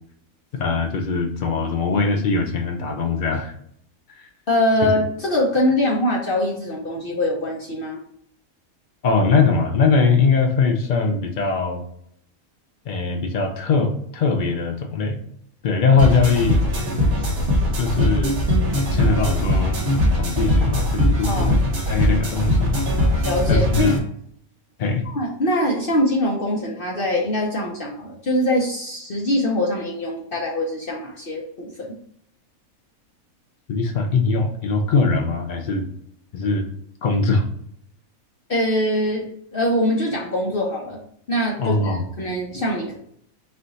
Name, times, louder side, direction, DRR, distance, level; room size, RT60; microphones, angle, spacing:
voice 1, 0.5-3.5 4.1-4.2 9.0-11.8 12.9-15.2 15.6-16.7 17.8-18.4 18.9-19.8 20.1-21.6 21.9-22.7 23.5-23.9 24.8-25.0 33.7-35.9 36.3-36.7 37.0-37.4 41.6-42.0, left 4 dB, 80° left, 4 dB, 0.4 m, -21 dB
voice 2, 4.5-8.0 21.2-21.5 23.2-23.9 25.1-32.0 38.5-41.0 41.3-43.0, left 1 dB, 50° left, -2 dB, 0.8 m, -23 dB
sound 1, 16.0-24.0, left 1 dB, 50° right, 1.1 m, -20 dB
4.2 x 2.5 x 3.9 m, 0.68 s
omnidirectional pair, 1.5 m